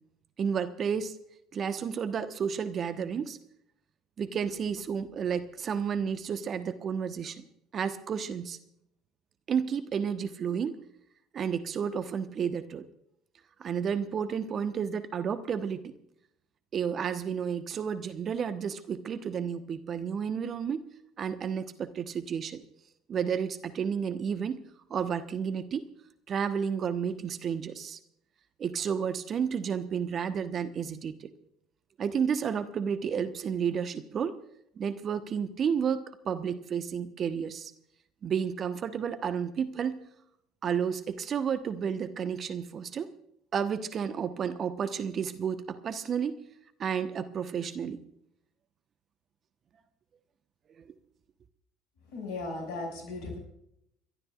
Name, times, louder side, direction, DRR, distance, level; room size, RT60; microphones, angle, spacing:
voice 1, 0.4-1.1 1.5-3.4 4.2-7.5 7.7-8.6 9.5-10.8 11.3-12.9 13.6-15.9 16.7-20.8 21.2-22.6 23.1-24.6 24.9-25.9 26.3-28.0 28.6-31.3 32.0-34.4 34.8-37.7 38.2-40.0 40.6-43.1 43.5-46.4 46.8-48.0, right 7 dB, 40° right, 10 dB, 1.1 m, -31 dB
voice 2, 52.1-53.4, left 3 dB, 65° left, 3 dB, 6.3 m, -36 dB
30.0 x 12.5 x 2.4 m, 0.75 s
figure-of-eight pair, 65°, 0 cm